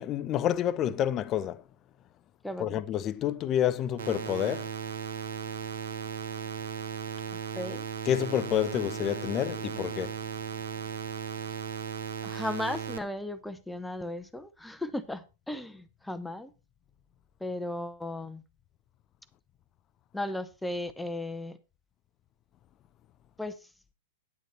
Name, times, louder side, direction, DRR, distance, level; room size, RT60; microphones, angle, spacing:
voice 1, 0.0-1.6 2.6-4.7 8.1-10.2, left 10 dB, 30° left, 0.6 m, -29 dB
voice 2, 2.4-2.8 7.6-7.8 12.2-16.5 17.4-18.4 20.1-21.6 23.4-23.6, left 1 dB, 5° left, 1.0 m, -36 dB
sound 1, 4.0-13.0, right 7 dB, 60° right, 1.3 m, -36 dB
9.6 x 9.3 x 4.3 m
figure-of-eight pair, 100°, 0 cm